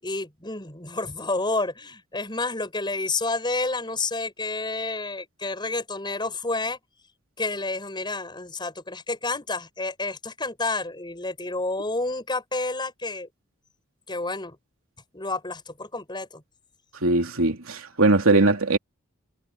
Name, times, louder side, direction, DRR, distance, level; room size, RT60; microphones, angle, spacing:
voice 1, 0.0-6.8 7.4-13.3 14.1-14.6 15.1-16.4, left 3 dB, 20° left, 7.1 m, -30 dB
voice 2, 17.0-18.8, right 2 dB, 80° right, 3.1 m, -20 dB
head